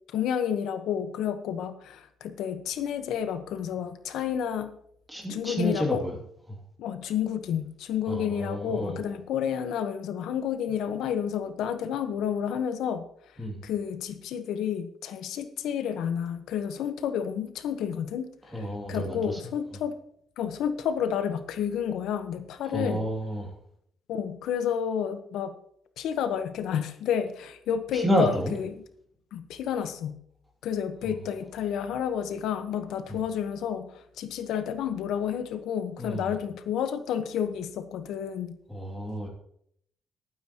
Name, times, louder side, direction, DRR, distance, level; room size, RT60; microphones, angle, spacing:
voice 1, 0.1-4.8 5.3-6.0 6.8-13.0 13.6-18.3 18.5-19.9 20.4-23.0 24.1-25.5 26.0-28.8 29.3-30.2 30.6-38.6, left 8 dB, 80° left, 9 dB, 1.2 m, -30 dB
voice 2, 5.1-6.2 6.5-6.6 8.1-9.0 13.4-13.7 18.5-19.4 22.6-23.5 27.9-28.5 31.0-31.1 33.1-33.2 36.0-36.3 38.7-39.3, equal, 5° right, 0 dB, 2.6 m, -30 dB
20.0 x 9.3 x 3.0 m, 0.68 s
cardioid pair, 180°, 0 cm